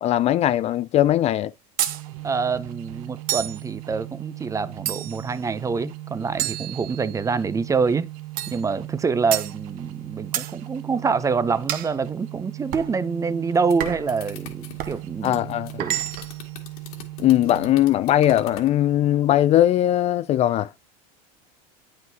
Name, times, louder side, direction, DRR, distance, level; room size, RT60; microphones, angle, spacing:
voice 1, 0.0-1.5 15.2-15.7 17.2-20.7, left 12 dB, 35° left, 0.4 m, -20 dB
sound 1, 1.8-2.0 3.3-3.6 4.9-5.3 6.4-7.3 8.4-8.6 9.3-9.5 10.3-10.5 11.7-11.9 12.7-12.9 13.8-14.1 14.8-15.0 15.8-16.4, right 13 dB, 50° right, 0.9 m, -29 dB
sound 2, 1.9-18.0, right 18 dB, 75° right, 0.8 m, -38 dB
voice 2, 2.2-8.1 8.5-15.4 15.8-16.0, right 5 dB, 15° right, 0.6 m, -26 dB
sound 3, 13.3-18.7, left 6 dB, 85° left, 2.2 m, -43 dB
9.2 x 5.7 x 2.8 m
supercardioid pair, 110°, 18 cm